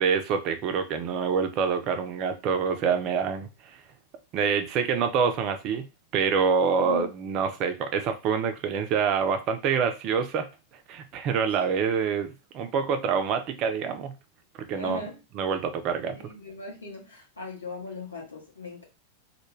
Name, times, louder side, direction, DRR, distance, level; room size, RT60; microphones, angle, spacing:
voice 1, 0.0-3.8 4.3-5.9 6.1-10.5 10.9-14.2 14.7-15.0 15.3-16.2, right 6 dB, 40° right, 8 dB, 0.4 m, -26 dB
voice 2, 14.8-15.2 16.1-18.8, left 3 dB, 75° left, -2 dB, 0.8 m, -38 dB
2.2 x 2.2 x 3.1 m, 0.28 s
figure-of-eight pair, 90°, 0 cm